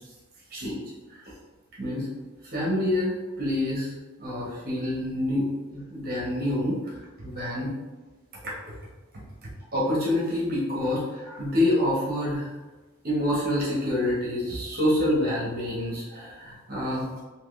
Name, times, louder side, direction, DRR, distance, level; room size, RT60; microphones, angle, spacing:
voice 1, 0.5-0.8 1.1-1.2 1.8-2.1 2.5-3.9 4.2-5.5 5.7-6.9 7.2-7.7 9.4-12.5 13.0-17.1, left 1 dB, 45° right, -6 dB, 0.9 m, -27 dB
3.5 x 2.7 x 2.4 m, 1.2 s
head